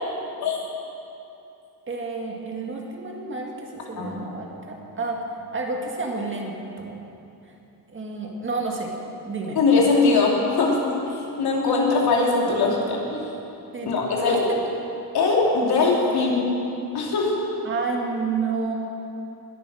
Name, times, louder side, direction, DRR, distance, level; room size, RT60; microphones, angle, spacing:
voice 1, 1.9-7.0 7.5-7.6 7.9-8.9 9.3-9.6 13.7-14.6 17.6-18.7, right 3 dB, 30° right, 0 dB, 1.8 m, -30 dB
voice 2, 9.6-13.3 13.8-14.4 15.1-16.4 16.9-17.4, left 3 dB, 70° left, -2 dB, 3.0 m, -21 dB
20.5 x 9.1 x 6.3 m, 2.8 s
cardioid pair, 165°, 40 cm